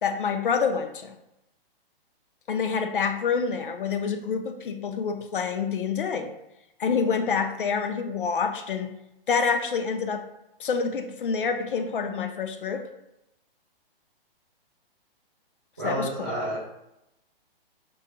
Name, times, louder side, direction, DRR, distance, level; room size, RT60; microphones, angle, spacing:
voice 1, 0.0-1.1 2.5-6.3 6.8-8.9 9.3-10.2 10.6-12.8 15.8-16.1, left 5 dB, 60° left, 7 dB, 0.5 m, -27 dB
voice 2, 15.8-16.8, right 1 dB, 10° right, -11 dB, 0.4 m, -30 dB
5.3 x 2.2 x 2.7 m, 0.86 s
hypercardioid pair, 175°, 30 cm